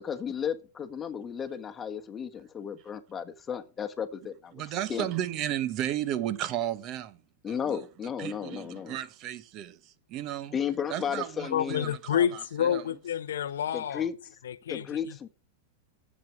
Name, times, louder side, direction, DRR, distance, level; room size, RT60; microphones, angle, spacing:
voice 1, 0.0-4.6 4.9-5.1 7.4-9.0 10.5-11.9 13.7-14.1 14.7-15.3, left 8 dB, 25° left, 1.3 m, -34 dB
voice 2, 4.5-7.2 7.5-7.8 8.2-10.5 10.9-12.8, right 11 dB, 45° right, 1.2 m, -34 dB
voice 3, 11.5-14.1 14.4-15.3, left 9 dB, 80° left, 0.5 m, -29 dB
7.6 x 7.5 x 7.4 m
hypercardioid pair, 110°, 0 cm